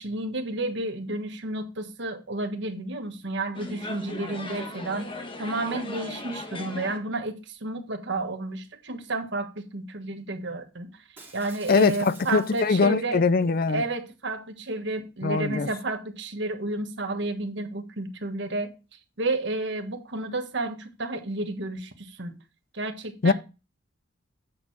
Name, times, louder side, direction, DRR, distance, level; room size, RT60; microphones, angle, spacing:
voice 1, 0.0-10.9 11.3-13.2 13.7-18.7 19.2-22.3 22.7-23.3, right 2 dB, 65° right, 1.4 m, -31 dB
sound 1, 3.5-7.0, left 2 dB, 30° left, 1.4 m, -37 dB
Shatter, 11.2-13.0 13.4-13.7, right 3 dB, 10° right, 2.7 m, -48 dB
voice 2, 11.7-13.8 15.2-15.7 23.2-23.3, left 4 dB, 50° left, 0.5 m, -22 dB
8.5 x 6.6 x 4.1 m
head